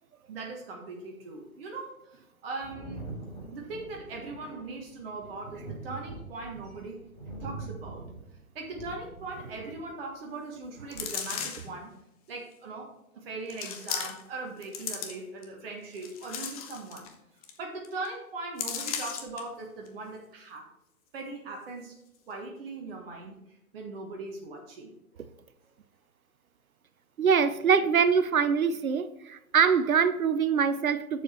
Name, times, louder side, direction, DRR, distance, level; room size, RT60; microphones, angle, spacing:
voice 1, 0.3-3.0 3.5-7.0 7.4-8.0 8.5-11.9 12.3-17.1 17.6-20.6 21.1-21.9 22.3-23.4 23.7-25.2, right 3 dB, 40° right, 1.5 m, -40 dB
Thunder, 2.6-10.0 11.1-11.2, right 3 dB, 10° left, 2.2 m, -43 dB
sound 1, 10.9-11.8 12.5-12.6 13.5-14.3 14.6-15.4 15.9-17.1 17.4-17.6 17.8-18.1 18.6-19.4 19.9-20.0, left 7 dB, 25° left, 0.9 m, -36 dB
voice 2, 27.2-31.2, right 6 dB, 70° right, 0.8 m, -24 dB
7.1 x 7.0 x 4.4 m
figure-of-eight pair, 125°, 44 cm